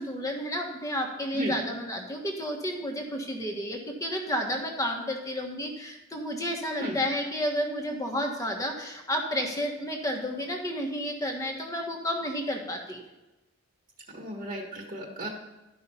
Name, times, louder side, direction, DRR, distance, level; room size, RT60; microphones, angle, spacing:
voice 1, 0.0-13.0, equal, 15° left, 2 dB, 1.4 m, -31 dB
voice 2, 14.1-15.3, right 1 dB, 40° right, 0 dB, 1.5 m, -33 dB
12.5 x 5.6 x 5.7 m, 1.0 s
head